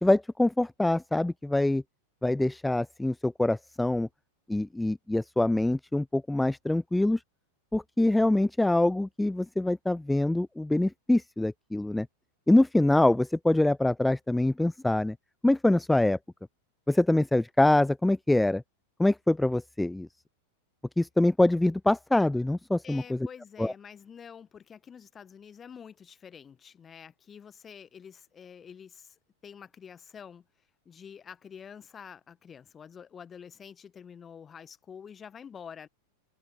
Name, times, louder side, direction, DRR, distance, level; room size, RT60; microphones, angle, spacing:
voice 1, 0.0-1.8 2.2-4.1 4.5-7.2 7.7-12.1 12.5-15.2 15.4-16.2 16.9-18.6 19.0-20.1 21.0-23.3 23.6-23.7, left 1 dB, 5° left, 0.4 m, -24 dB
voice 2, 22.8-29.1 29.4-30.4 30.8-35.9, left 7 dB, 20° left, 1.4 m, -47 dB
figure-of-eight pair, 90°, 0 cm